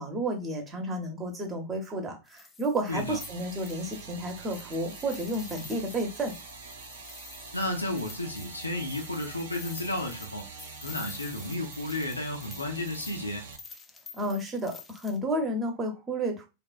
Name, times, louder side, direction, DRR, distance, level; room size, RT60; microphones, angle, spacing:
voice 1, 0.0-6.3 14.1-16.5, right 1 dB, 20° right, 0.9 m, -31 dB
sound 1, 2.3-15.2, left 4 dB, 15° left, 0.4 m, -48 dB
sound 2, 2.9-13.6, right 5 dB, 60° right, 0.6 m, -45 dB
voice 2, 7.5-10.5 10.8-13.5, left 1 dB, 80° left, 0.6 m, -33 dB
3.3 x 2.4 x 2.3 m
figure-of-eight pair, 90°, 0 cm